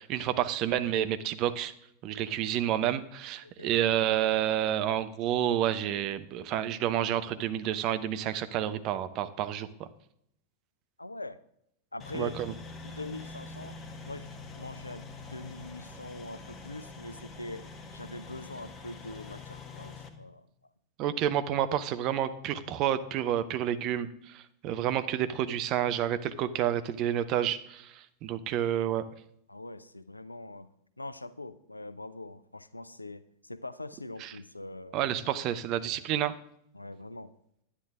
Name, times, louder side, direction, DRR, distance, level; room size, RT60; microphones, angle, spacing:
voice 1, 0.0-1.7 2.0-9.9 12.1-12.5 21.0-29.0 34.2-34.3 34.9-36.3, right 11 dB, 40° right, 11 dB, 0.7 m, -29 dB
voice 2, 11.0-11.4 11.9-12.5 12.8-13.8 14.1-14.3 14.5-15.0 15.3-17.7 17.9-20.5 29.5-30.7 31.0-35.0 36.7-37.3, left 2 dB, 85° left, 14 dB, 0.5 m, -43 dB
sound 1, 12.0-20.1, left 3 dB, 25° left, 1.4 m, -45 dB
10.5 x 9.9 x 3.6 m, 0.73 s
figure-of-eight pair, 90°, 0 cm